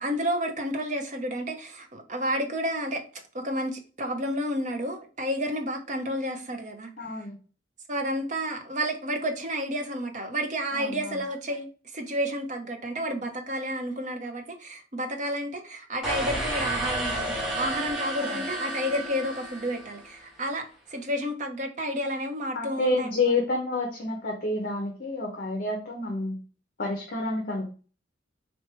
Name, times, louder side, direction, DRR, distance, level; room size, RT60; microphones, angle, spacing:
voice 1, 0.0-3.0 3.3-6.9 7.9-11.7 11.9-23.1, equal, 40° right, 0.7 m, -31 dB
voice 2, 7.0-7.4 10.7-11.2 18.2-18.4 22.5-26.4 26.8-27.7, left 2 dB, 50° left, 0.8 m, -29 dB
sound 1, 16.0-20.2, right 1 dB, 5° right, 1.3 m, -31 dB
3.3 x 2.8 x 4.4 m
head